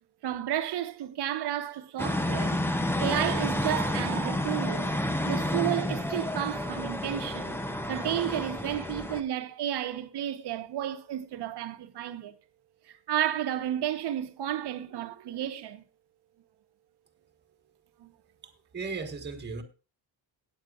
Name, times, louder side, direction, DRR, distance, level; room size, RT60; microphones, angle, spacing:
voice 1, 0.2-2.6 3.0-5.0 5.3-7.6 7.9-12.4 12.9-15.8 18.0-18.1, right 11 dB, 60° right, 1.1 m, -32 dB
sound 1, 2.0-9.2, left 1 dB, 5° left, 0.6 m, -30 dB
voice 2, 18.4-19.6, right 4 dB, 25° right, 1.6 m, -37 dB
18.5 x 9.1 x 2.5 m
cardioid pair, 160°, 45 cm